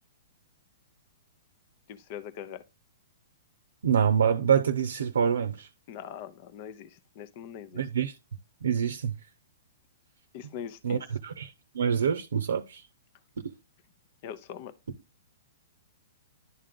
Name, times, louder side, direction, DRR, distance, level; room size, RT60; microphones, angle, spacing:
voice 1, 1.9-2.6 5.9-7.8 10.3-11.2 14.2-14.7, left 9 dB, 45° left, 0.7 m, -42 dB
voice 2, 3.8-5.7 7.7-8.1 8.6-9.1 10.8-11.0 11.2-12.8, right 7 dB, 70° right, 0.6 m, -26 dB
11.0 x 3.7 x 3.7 m
figure-of-eight pair, 115°, 0 cm